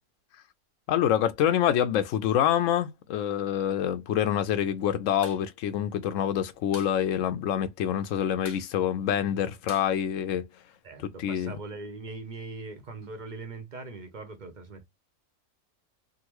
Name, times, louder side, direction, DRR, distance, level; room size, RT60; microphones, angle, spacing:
voice 1, 0.9-10.5 11.2-11.5, left 10 dB, 75° left, 0.9 m, -26 dB
sound 1, 5.2-5.4 5.7-5.8 6.1-7.0 7.3-7.4 7.6-8.0 8.4-10.8, left 3 dB, 35° left, 1.2 m, -47 dB
voice 2, 10.8-14.9, right 3 dB, 45° right, 0.7 m, -41 dB
3.7 x 2.1 x 2.9 m
omnidirectional pair, 1.4 m